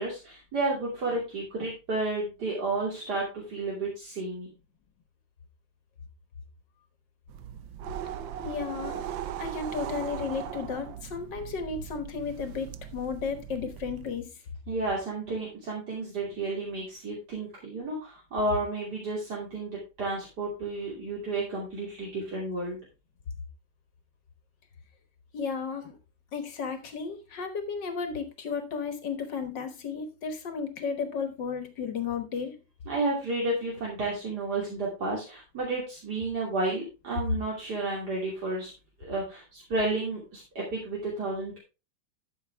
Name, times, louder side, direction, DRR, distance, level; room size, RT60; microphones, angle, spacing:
voice 1, 0.0-4.5 14.7-22.8 32.9-38.7 39.0-41.6, right 2 dB, 60° right, -3 dB, 3.3 m, -31 dB
sound 1, 7.3-14.1, right 10 dB, 85° right, 1.5 m, -39 dB
voice 2, 8.4-9.1 9.4-14.3 25.3-26.0 26.3-32.6, left 5 dB, 70° left, 8 dB, 1.9 m, -33 dB
12.5 x 6.6 x 3.4 m, 0.28 s
omnidirectional pair, 2.0 m